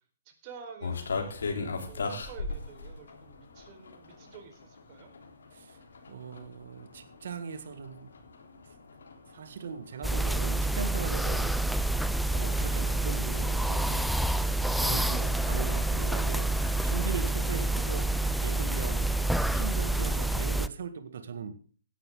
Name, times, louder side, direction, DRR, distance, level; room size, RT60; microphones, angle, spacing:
voice 1, 0.2-5.1, right 6 dB, 35° right, 5 dB, 4.4 m, -49 dB
sound 1, 0.8-20.6, left 4 dB, 70° left, 3.5 m, -42 dB
voice 2, 5.5-8.1 8.7-8.8 9.3-11.6 12.3-14.2 14.7-18.1 18.4-21.5, right 6 dB, 60° right, 10 dB, 1.8 m, -39 dB
sound 2, 10.0-20.7, right 2 dB, ahead, 0.5 m, -28 dB
17.0 x 12.0 x 3.8 m, 0.41 s
figure-of-eight pair, 125°, 0 cm